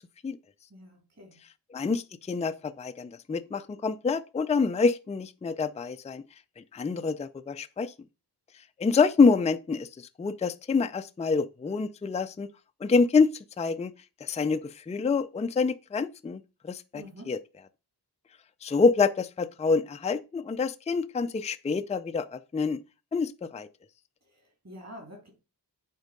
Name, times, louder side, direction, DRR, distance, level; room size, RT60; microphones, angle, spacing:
voice 1, 0.7-1.4 16.9-17.3 24.2-25.3, equal, 40° right, 3.6 m, -47 dB
voice 2, 1.7-6.2 6.6-7.9 8.8-12.5 12.8-13.3 13.6-13.9 14.2-17.4 18.6-22.8 23.1-23.7, left 4 dB, 15° left, 0.4 m, -26 dB
8.1 x 4.5 x 5.2 m
wide cardioid pair, 125°, 42 cm